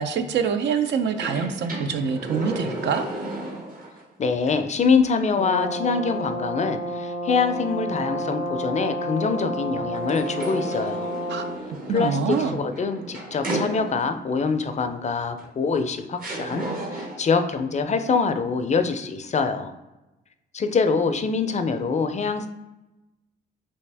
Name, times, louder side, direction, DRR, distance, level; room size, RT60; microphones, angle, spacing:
voice 1, 0.0-3.0 11.3-11.5 11.9-12.6, right 6 dB, 65° right, 7 dB, 0.4 m, -25 dB
sound 1, 1.1-4.0 4.5-4.6 9.9-14.3 15.4-15.5 16.2-17.4, right 2 dB, 45° right, 0.9 m, -33 dB
voice 2, 4.2-11.1 11.9-19.7 20.5-22.5, left 5 dB, 35° left, 8 dB, 0.4 m, -24 dB
Brass instrument, 5.4-11.6, equal, 25° right, 0.6 m, -30 dB
3.4 x 2.6 x 3.3 m, 1.0 s
supercardioid pair, 65°, 19 cm